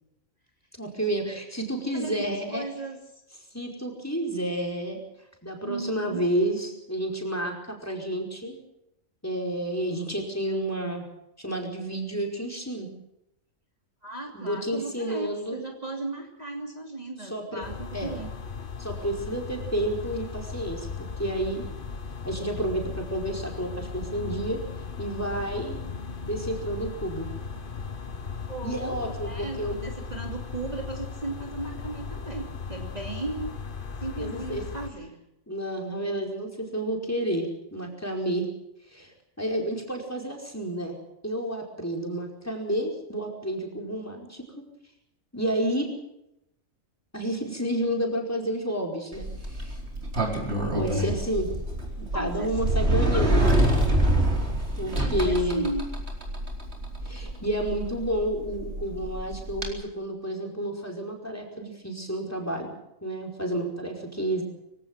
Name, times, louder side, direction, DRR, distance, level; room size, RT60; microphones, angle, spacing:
voice 1, 0.8-2.6 3.5-5.0 5.4-8.6 9.2-11.1 11.4-12.9 14.3-15.6 17.3-17.6 17.9-18.1 18.8-21.6 22.2-24.6 25.0-25.8 26.3-27.3 28.6-29.8 34.2-34.6 35.5-38.5 38.9-39.1 39.4-41.0 41.2-44.6 45.3-45.9 47.1-49.7 50.7-51.5 52.0-53.6 54.8-55.6 57.0-62.7 63.0-64.4, right 1 dB, 10° left, 2 dB, 4.9 m, -30 dB
voice 2, 1.9-3.2 5.6-6.2 14.0-18.3 28.5-33.5 34.0-35.2 50.5-51.2 52.1-52.5 55.0-55.9, right 2 dB, 30° right, 1 dB, 3.0 m, -36 dB
sound 1, 17.6-34.9, left 5 dB, 40° left, 1.5 m, -37 dB
Sliding door, 49.1-59.7, right 1 dB, 50° right, 4.6 m, -26 dB
24.5 x 17.0 x 7.7 m, 0.83 s
omnidirectional pair, 1.4 m